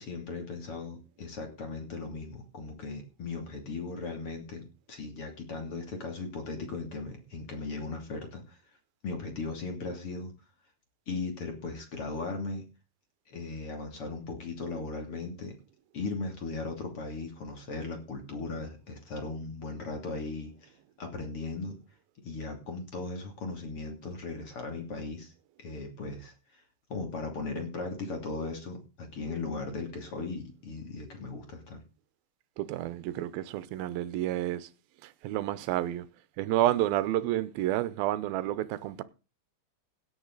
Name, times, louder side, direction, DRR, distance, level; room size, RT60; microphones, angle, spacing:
voice 1, 0.0-8.6 9.0-10.3 11.1-12.6 13.3-15.6 15.9-20.7 21.0-21.8 22.2-25.3 25.6-26.6 26.9-31.8, left 3 dB, 35° left, 3.4 m, -37 dB
voice 2, 32.6-34.7 35.0-36.1 36.4-39.0, right 14 dB, 75° right, 2.6 m, -30 dB
16.5 x 9.8 x 4.0 m
omnidirectional pair, 4.6 m